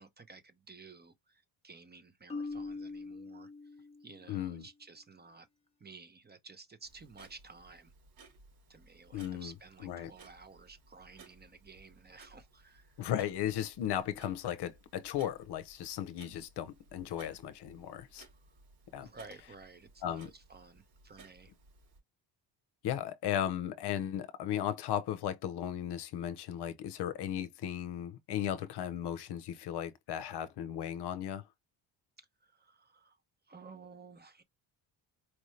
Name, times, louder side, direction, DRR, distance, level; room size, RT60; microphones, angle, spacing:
voice 1, 0.0-5.5 5.8-7.9 8.7-13.1 18.4-18.6 18.9-21.5 32.2-34.4, right 4 dB, 20° right, 0.8 m, -54 dB
Marimba xylophone, 2.3-4.3, left 3 dB, 15° left, 0.8 m, -42 dB
voice 2, 4.3-4.6 9.1-9.5 9.8-10.1 13.0-18.3 18.9-19.1 20.0-20.3 22.8-31.4, left 10 dB, 60° left, 0.7 m, -36 dB
Clock, 6.8-22.0, right 3 dB, 80° right, 2.9 m, -60 dB
4.5 x 2.6 x 3.2 m
cardioid pair, 95°, 45 cm